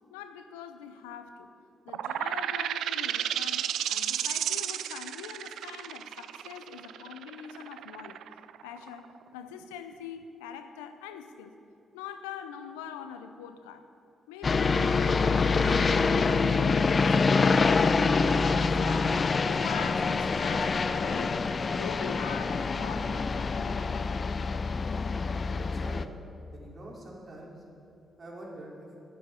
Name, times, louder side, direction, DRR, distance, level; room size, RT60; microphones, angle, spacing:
voice 1, 0.1-1.5 1.8-8.2 8.6-11.6 11.9-13.9 14.3-19.2 19.4-21.4 21.7-23.9, left 8 dB, 90° left, 9 dB, 0.6 m, -43 dB
sound 1, 1.9-9.2, right 10 dB, 75° right, 0.3 m, -32 dB
sound 2, 14.4-26.1, left 4 dB, 45° left, 0.5 m, -26 dB
voice 2, 25.5-26.1 26.5-27.6 28.2-28.9, right 1 dB, 45° right, -3 dB, 4.1 m, -45 dB
11.5 x 7.8 x 9.6 m, 2.6 s
hypercardioid pair, 40°, 0 cm